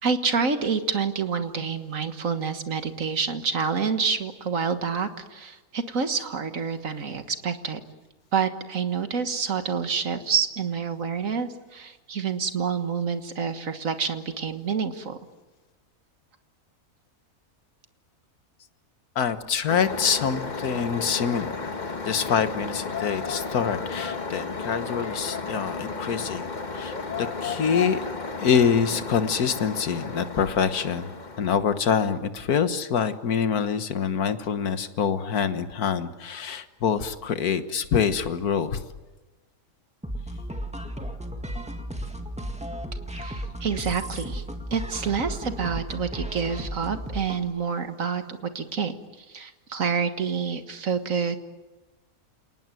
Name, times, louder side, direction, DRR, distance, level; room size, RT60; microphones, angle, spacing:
voice 1, 0.0-7.8 8.3-15.2 43.2-44.4 44.7-51.4, right 6 dB, 60° right, 9 dB, 1.9 m, -28 dB
voice 2, 19.2-21.7 22.0-28.0 28.4-38.9, left 7 dB, 75° left, 10 dB, 1.8 m, -25 dB
sound 1, 19.7-31.5, left 4 dB, 30° left, 1.4 m, -33 dB
sound 2, 40.0-47.5, equal, 5° right, 1.9 m, -34 dB
29.0 x 19.0 x 9.2 m, 1.2 s
omnidirectional pair, 1.6 m